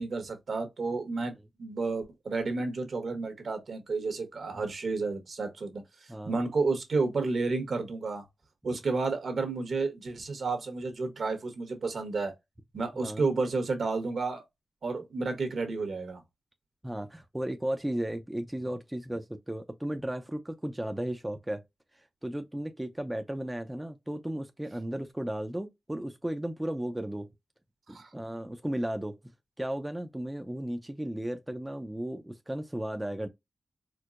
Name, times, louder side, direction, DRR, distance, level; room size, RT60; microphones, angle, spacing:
voice 1, 0.0-1.3 1.6-8.2 8.6-12.3 12.7-14.4 14.8-16.2 27.9-28.3, right 3 dB, 65° right, 1.1 m, -31 dB
voice 2, 12.9-13.3 16.8-21.6 22.2-27.3 27.9-29.2 29.6-33.3, right 1 dB, 10° right, 0.4 m, -35 dB
4.4 x 2.1 x 2.4 m
wide cardioid pair, 100°, 0 cm